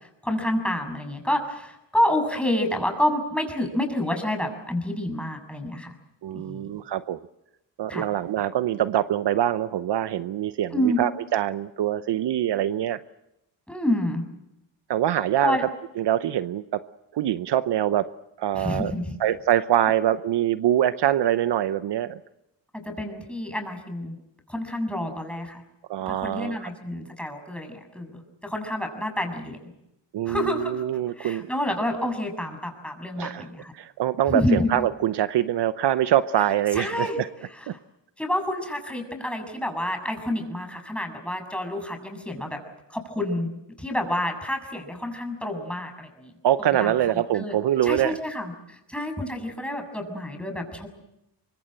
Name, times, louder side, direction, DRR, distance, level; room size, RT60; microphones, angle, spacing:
voice 1, 0.2-5.9 6.3-6.7 7.9-8.0 10.7-11.0 13.7-14.2 15.4-15.6 18.5-19.1 22.7-24.2 24.5-25.6 26.0-29.6 30.3-30.8 31.2-33.7 34.3-34.7 36.7-37.2 38.2-42.6 42.9-43.5 43.8-46.3 46.6-46.9 47.3-47.5 47.8-50.9, left 1 dB, ahead, 4 dB, 6.9 m, -28 dB
voice 2, 6.2-7.2 7.8-13.0 14.9-15.6 16.0-16.8 17.1-18.1 18.4-18.9 19.2-22.2 25.9-26.7 30.1-31.5 33.2-33.5 33.7-37.3 37.7-37.8 46.4-48.2, right 11 dB, 65° right, 14 dB, 0.8 m, -24 dB
24.0 x 23.5 x 7.7 m, 0.88 s
cardioid pair, 65°, 44 cm